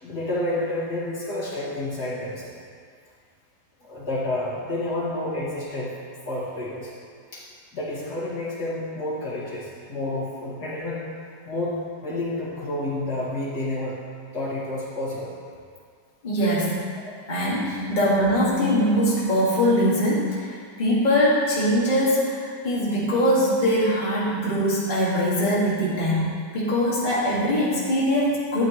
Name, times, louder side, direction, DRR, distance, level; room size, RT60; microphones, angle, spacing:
voice 1, 0.0-2.5 3.8-6.0 6.2-6.9 7.3-7.4 7.7-11.0 11.5-11.7 12.0-14.0 14.3-15.3 17.6-17.8, left 1 dB, 65° left, -8 dB, 2.6 m, -29 dB
voice 2, 16.2-16.7 17.3-28.7, equal, 25° left, -8 dB, 2.0 m, -22 dB
13.0 x 8.8 x 3.1 m, 2.1 s
omnidirectional pair, 1.9 m